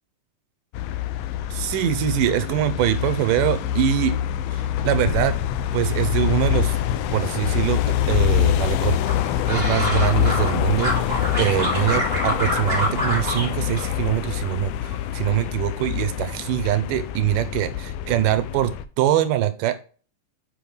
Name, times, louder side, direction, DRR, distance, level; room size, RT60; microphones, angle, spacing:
sound 1, 0.7-18.8, left 11 dB, 90° left, 2.2 m, -25 dB
voice 1, 1.5-4.2 4.5-5.4 5.7-6.8 7.1-9.0 9.5-18.7 19.0-19.8, right 12 dB, 85° right, 10 dB, 2.4 m, -23 dB
sound 2, 9.0-10.5 10.8-13.5 13.8-14.5 14.8-15.3, equal, 20° right, 2.7 m, -26 dB
7.8 x 5.1 x 3.4 m, 0.38 s
omnidirectional pair, 3.7 m